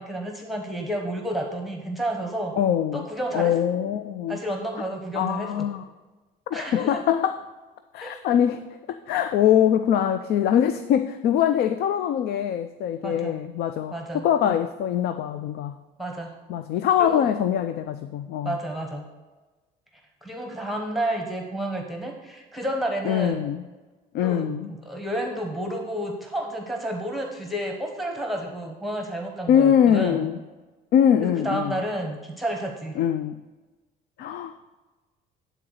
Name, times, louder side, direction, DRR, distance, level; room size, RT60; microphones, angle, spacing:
voice 1, 0.0-2.5 2.9-3.5 4.3-5.5 6.5-7.0 8.0-8.1 13.0-13.3 13.9-14.6 16.0-16.3 17.0-17.3 18.4-19.0 20.2-23.4 24.2-30.3 31.2-33.0, right 1 dB, ahead, 1 dB, 1.0 m, -31 dB
voice 2, 2.6-3.1 3.3-4.4 5.1-5.9 6.5-7.4 7.9-8.6 8.9-15.8 16.5-18.6 23.0-23.6 24.1-24.7 29.5-30.4 30.9-31.8 33.0-33.4 34.2-34.5, left 9 dB, 70° left, 10 dB, 0.4 m, -23 dB
10.0 x 4.0 x 6.3 m, 1.2 s
cardioid pair, 110°, 17 cm